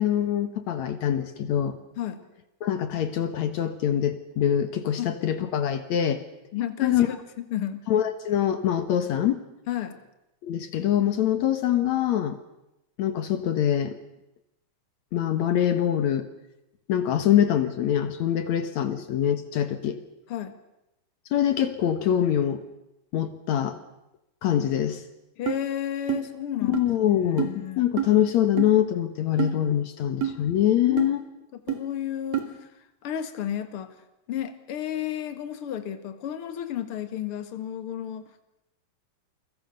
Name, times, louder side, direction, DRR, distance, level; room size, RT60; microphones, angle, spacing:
voice 1, 0.0-1.8 2.6-6.2 6.8-7.1 7.9-9.4 10.4-12.4 13.0-14.0 15.1-16.3 16.9-20.0 21.3-22.6 23.1-23.8 24.4-25.0 26.7-31.2, left 10 dB, 70° left, 9 dB, 2.6 m, -24 dB
voice 2, 6.5-7.8 9.7-10.0 20.3-20.6 25.4-26.8 27.2-27.9 30.8-31.1 31.7-32.7 33.0-34.0 34.3-38.4, left 10 dB, 50° left, 9 dB, 2.5 m, -32 dB
sound 1, 25.5-25.6 26.1-26.2 26.7-26.8 27.4-27.5 28.0-28.1 28.6-28.7 29.4-29.5 30.2-30.4 31.0-31.1 31.7-31.8 32.3-32.5, right 10 dB, 60° right, 3.7 m, -26 dB
29.0 x 23.0 x 6.6 m, 0.91 s
omnidirectional pair, 3.3 m